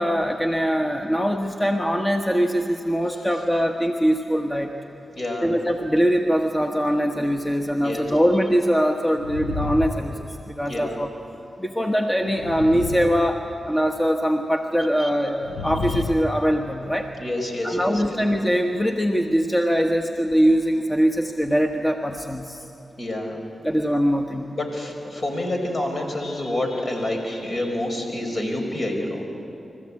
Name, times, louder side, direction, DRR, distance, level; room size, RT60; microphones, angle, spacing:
voice 1, 0.0-4.7 5.4-11.1 11.6-17.1 17.6-22.6 23.6-24.5, equal, 20° left, 3 dB, 1.3 m, -22 dB
voice 2, 5.2-5.5 7.8-8.1 10.7-11.0 15.0-15.1 15.9-16.0 17.2-18.2 23.0-23.4 24.5-29.2, left 1 dB, 55° left, 2 dB, 5.0 m, -28 dB
sound 1, 9.1-10.7 12.2-13.8 15.4-16.7, left 3 dB, 85° left, 1.2 m, -31 dB
26.0 x 15.0 x 8.6 m, 2.8 s
supercardioid pair, 40°, 0 cm